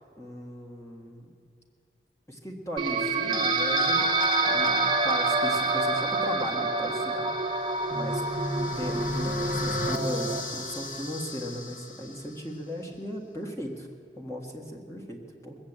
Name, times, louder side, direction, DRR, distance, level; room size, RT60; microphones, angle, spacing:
voice 1, 0.2-1.3 2.3-8.2 8.5-13.9 14.2-15.6, equal, 15° left, 0 dB, 1.7 m, -37 dB
sound 1, 2.8-10.4, right 2 dB, 25° right, 1.2 m, -26 dB
sound 2, 7.3-12.4, left 3 dB, 45° left, 0.9 m, -37 dB
20.0 x 8.1 x 8.7 m, 2.5 s
head